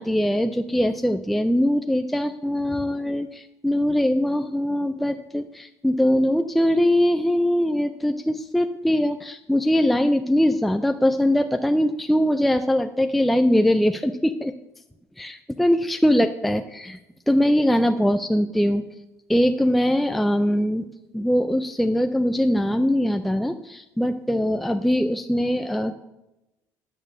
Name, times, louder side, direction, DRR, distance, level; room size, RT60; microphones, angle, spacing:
voice 1, 0.0-14.5 15.2-17.0 17.3-18.8 19.3-20.8 21.1-25.9, equal, ahead, 6 dB, 0.3 m, -22 dB
8.7 x 6.7 x 7.3 m, 0.95 s
cardioid pair, 170°, 7 cm